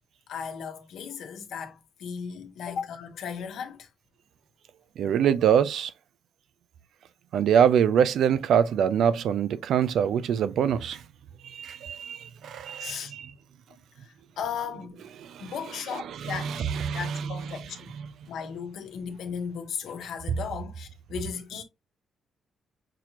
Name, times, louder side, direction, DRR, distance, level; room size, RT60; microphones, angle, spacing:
voice 1, 0.3-3.9 12.8-13.2 14.0-15.0 15.4-17.9 18.3-21.6, left 7 dB, 75° left, 1.2 m, -36 dB
voice 2, 5.0-5.9 7.3-11.0 11.4-13.3 15.2-15.5 16.2-17.4, right 8 dB, 75° right, 0.5 m, -24 dB
6.1 x 2.8 x 3.0 m
cardioid pair, 85°, 0 cm